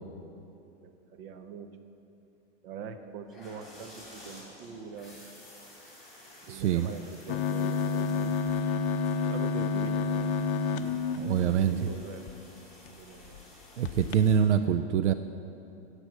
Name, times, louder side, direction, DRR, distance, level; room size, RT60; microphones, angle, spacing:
voice 1, 0.6-1.8 2.6-5.2 6.5-8.4 9.2-10.3 10.7-12.3 13.0-13.4, right 6 dB, 50° right, 8 dB, 0.9 m, -43 dB
sound 1, 3.3-14.4, left 1 dB, ahead, 3.0 m, -52 dB
voice 2, 6.5-6.9 11.2-11.9 13.8-15.1, right 8 dB, 90° right, 11 dB, 0.5 m, -25 dB
sound 2, 7.3-12.3 12.9-13.0 13.2-13.4 13.8-14.2, left 5 dB, 50° left, 0.6 m, -30 dB
10.5 x 8.0 x 6.1 m, 2.8 s
hypercardioid pair, 135°, 34 cm